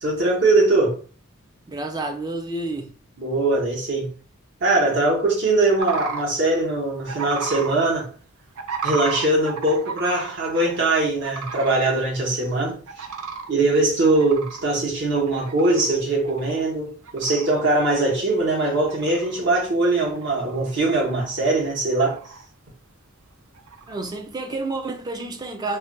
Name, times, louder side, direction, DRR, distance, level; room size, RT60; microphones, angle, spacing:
voice 1, 0.0-1.0 3.2-4.1 4.6-8.1 8.8-12.8 13.5-22.2, right 2 dB, 55° right, 1.0 m, -21 dB
voice 2, 1.7-2.9 23.9-25.8, right 2 dB, 20° right, 0.3 m, -29 dB
sound 1, 5.8-6.2 7.1-7.7 8.5-10.8 11.2-11.8 12.3-12.4 12.9-13.5 14.0-16.0 16.2-16.7 17.0-17.6 18.1-18.2 18.7-19.5 20.0-20.7 21.0-21.6 21.9-22.4 23.5-24.1, right 5 dB, 85° right, 0.5 m, -33 dB
2.5 x 2.2 x 3.7 m
head